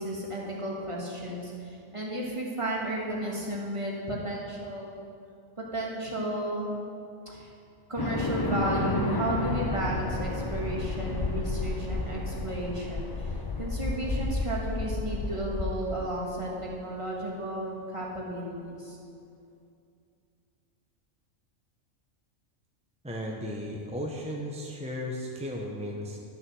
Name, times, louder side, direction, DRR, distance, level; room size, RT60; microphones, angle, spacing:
voice 1, 0.0-5.0 5.6-6.8 7.2-7.5 7.9-19.0, right 1 dB, 25° right, -3 dB, 1.7 m, -33 dB
sound 1, 8.0-16.5, left 2 dB, 35° left, 0.3 m, -31 dB
voice 2, 23.0-26.2, equal, 5° right, -1 dB, 0.6 m, -35 dB
11.5 x 6.4 x 6.1 m, 2.5 s
omnidirectional pair, 1.4 m